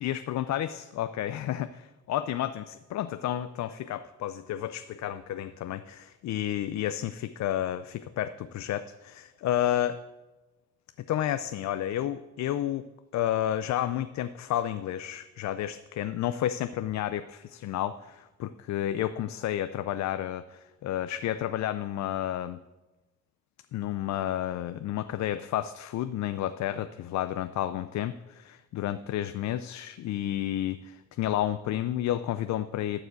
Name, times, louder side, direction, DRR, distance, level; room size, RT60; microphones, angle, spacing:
voice 1, 0.0-1.8 2.1-10.0 11.1-22.6 23.7-33.0, left 12 dB, 65° left, 11 dB, 0.5 m, -31 dB
13.0 x 4.9 x 7.8 m, 1.1 s
cardioid pair, 90°, 30 cm